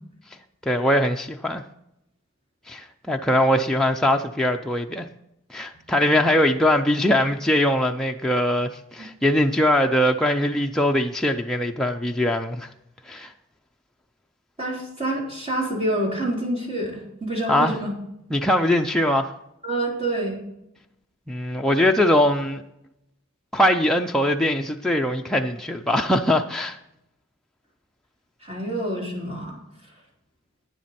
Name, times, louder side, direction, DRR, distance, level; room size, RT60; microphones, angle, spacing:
voice 1, 0.7-1.6 2.7-5.1 5.5-12.7 13.1-13.3 17.5-17.8 18.3-19.3 21.3-22.6 23.5-26.8, left 1 dB, 5° left, 0.4 m, -21 dB
voice 2, 14.6-17.9 19.6-20.4 28.4-29.6, right 1 dB, 30° right, 3.5 m, -27 dB
10.5 x 9.5 x 4.3 m
head